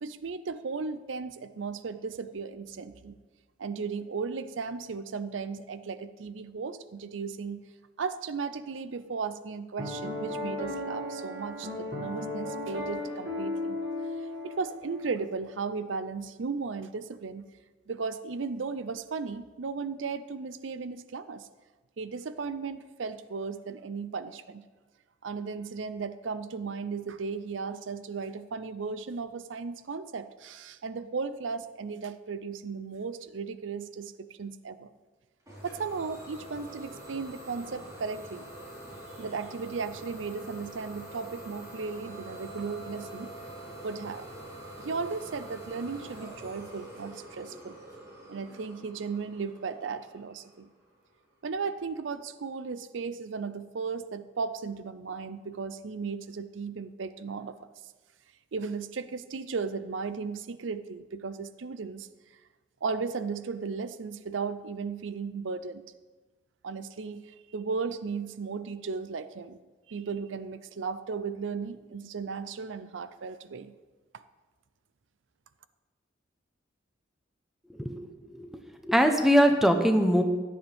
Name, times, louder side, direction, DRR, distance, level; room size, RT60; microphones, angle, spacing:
voice 1, 0.0-3.2 3.6-7.6 8.0-13.8 14.4-17.5 17.9-21.5 22.0-24.6 25.2-34.9 35.6-38.5 39.2-43.3 43.8-44.3 44.8-47.8 48.3-50.7 51.4-57.6 58.5-62.1 62.8-65.8 66.6-69.6 69.9-73.7, right 5 dB, 80° right, 13 dB, 0.5 m, -36 dB
Piano, 9.8-15.1, left 2 dB, 60° right, 2.3 m, -35 dB
Idling / Domestic sounds home sounds, 35.5-51.0, right 1 dB, 20° right, 4.4 m, -45 dB
voice 2, 77.8-78.5 78.8-80.2, equal, ahead, 5 dB, 0.9 m, -22 dB
15.0 x 10.5 x 3.5 m, 1.3 s
head